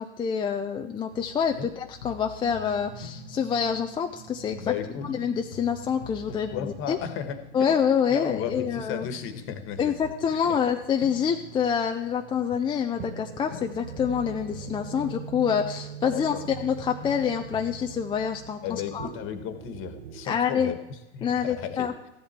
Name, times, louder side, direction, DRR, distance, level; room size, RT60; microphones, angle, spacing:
voice 1, 0.0-4.7 5.1-7.0 7.5-9.1 9.8-19.1 20.3-20.7 21.2-21.9, left 7 dB, 15° left, 4 dB, 0.5 m, -27 dB
sound 1, 1.1-20.3, right 8 dB, 70° right, 1.4 m, -44 dB
sound 2, 2.0-4.2 4.5-8.2 8.5-12.2 12.5-16.2 16.5-18.1, left 6 dB, 85° left, 1.2 m, -46 dB
voice 2, 4.6-5.0 6.3-7.6 8.1-9.9 10.3-10.6 16.1-16.5 18.6-20.8 21.1-21.9, left 8 dB, 35° left, 9 dB, 1.5 m, -35 dB
14.5 x 10.5 x 4.4 m, 0.91 s
hypercardioid pair, 115°, 34 cm